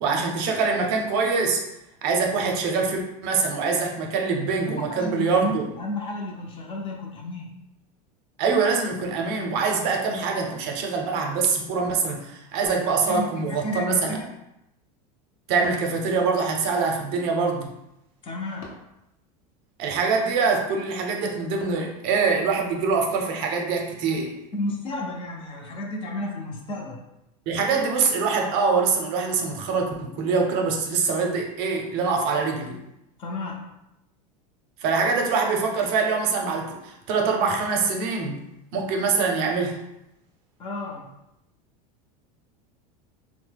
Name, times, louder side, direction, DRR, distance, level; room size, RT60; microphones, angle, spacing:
voice 1, 0.0-1.6 2.0-5.6 8.4-14.2 15.5-17.7 19.8-24.4 27.5-32.7 34.8-38.4 38.7-39.8, right 4 dB, 55° right, 2 dB, 0.6 m, -24 dB
voice 2, 4.9-7.5 13.1-14.3 18.2-18.7 24.5-27.0 33.2-33.6 40.6-41.1, left 1 dB, 30° left, 1 dB, 0.4 m, -32 dB
sound 1, 12.7-13.5 15.6-16.1 18.6-19.0 21.6-22.0, left 3 dB, 75° left, 0.7 m, -43 dB
2.7 x 2.1 x 3.3 m, 0.86 s
supercardioid pair, 130°, 20 cm